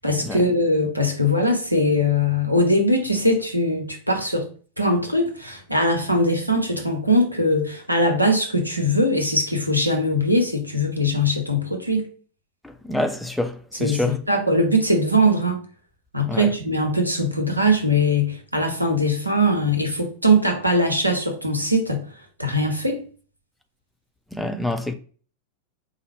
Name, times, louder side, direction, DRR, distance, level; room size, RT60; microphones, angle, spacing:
voice 1, 0.0-4.5 4.8-12.0 13.8-15.6 16.1-22.0 22.4-23.0, equal, 90° right, 0.8 m, -21 dB
voice 2, 12.8-14.2 16.3-16.5 24.3-24.9, left 1 dB, ahead, 0.4 m, -26 dB
4.6 x 2.1 x 3.1 m
figure-of-eight pair, 90°, 0 cm